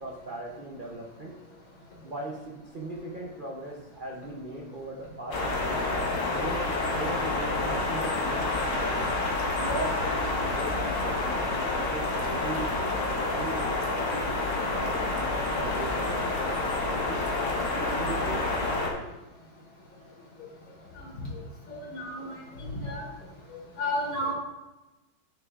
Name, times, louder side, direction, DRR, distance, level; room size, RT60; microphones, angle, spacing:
voice 1, 0.0-1.4 2.0-5.8 6.3-9.0 9.6-12.7 13.3-17.2 17.7-19.0, right 2 dB, 70° right, -1 dB, 0.4 m, -39 dB
sound 1, 5.3-18.9, left 2 dB, 45° left, 1.3 m, -28 dB
voice 2, 21.7-23.0 23.5-24.3, left 1 dB, 80° left, -3 dB, 3.1 m, -33 dB
10.5 x 6.5 x 2.5 m, 1.1 s
omnidirectional pair, 2.2 m